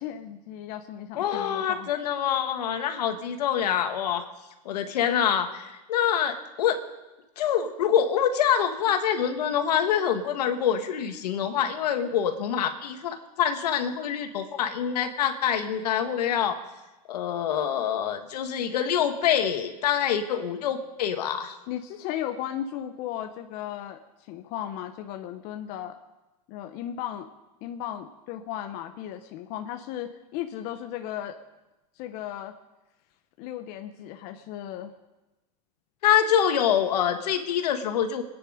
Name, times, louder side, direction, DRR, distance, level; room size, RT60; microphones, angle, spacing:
voice 1, 0.0-1.9 21.7-26.0 26.5-27.3 27.6-31.4 32.0-32.5 33.4-34.9, left 11 dB, 50° left, 6 dB, 1.1 m, -36 dB
voice 2, 1.2-4.2 4.7-6.8 7.4-16.6 17.1-21.6 36.0-38.2, left 9 dB, 85° left, 6 dB, 1.9 m, -25 dB
23.5 x 9.9 x 5.1 m, 1.0 s
supercardioid pair, 130°, 20 cm